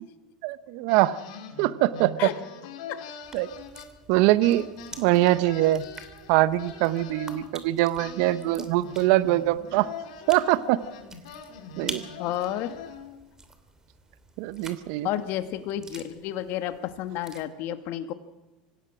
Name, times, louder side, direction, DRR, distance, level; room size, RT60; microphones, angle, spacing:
voice 1, 0.4-1.2 1.6-2.3 3.3-3.5 4.1-4.7 5.0-5.9 6.3-9.9 10.3-10.8 11.8-12.0 14.4-15.1, right 16 dB, 65° right, 15 dB, 1.0 m, -23 dB
sound 1, 0.9-4.1 4.4-7.5 8.0-13.2, left 5 dB, 70° left, 2.8 m, -43 dB
sound 2, 3.2-17.4, right 3 dB, 15° right, 2.8 m, -47 dB
voice 2, 12.2-12.7 15.0-18.1, left 12 dB, 55° left, 9 dB, 1.8 m, -31 dB
25.5 x 16.5 x 6.2 m, 1.1 s
hypercardioid pair, 90°, 4 cm